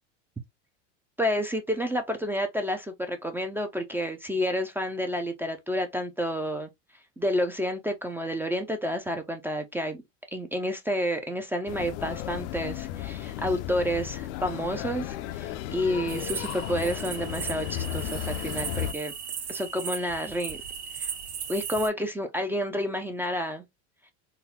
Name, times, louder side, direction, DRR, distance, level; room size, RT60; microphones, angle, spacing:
voice 1, 1.2-6.7 7.2-10.0 10.3-19.1 19.5-20.6 21.0-21.1 21.5-23.7, equal, 5° right, 0.3 m, -30 dB
sound 1, 11.7-18.9, left 12 dB, 65° left, 0.5 m, -34 dB
sound 2, 16.1-21.9, right 7 dB, 50° right, 1.2 m, -37 dB
3.9 x 2.0 x 2.7 m
hypercardioid pair, 100°, 38 cm